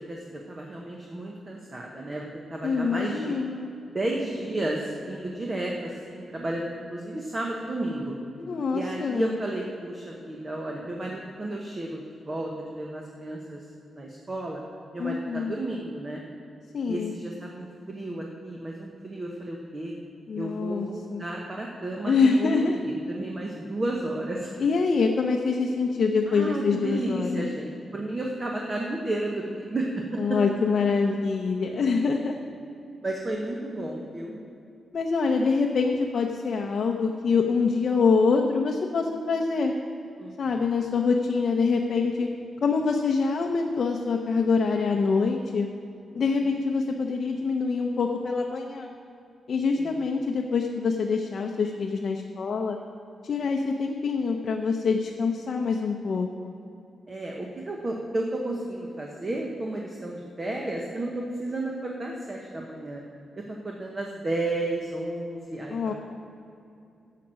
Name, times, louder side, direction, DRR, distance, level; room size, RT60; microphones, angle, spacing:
voice 1, 0.1-3.4 3.9-8.2 8.7-14.6 14.9-16.2 16.9-19.9 20.3-24.5 26.3-30.4 33.0-34.4 40.2-40.7 49.8-50.0 57.1-63.0 63.4-65.9, right 1 dB, 25° right, -1 dB, 0.9 m, -32 dB
voice 2, 2.6-3.7 8.5-9.3 15.0-15.5 16.7-17.1 20.3-21.2 22.0-22.8 24.6-27.5 30.2-32.4 34.9-39.7 40.4-42.3 42.6-45.7 46.1-48.9 49.5-52.8 53.2-56.6 65.7-65.9, left 4 dB, 45° left, 1 dB, 0.7 m, -25 dB
11.5 x 7.6 x 6.3 m, 2.6 s
wide cardioid pair, 175°, 0 cm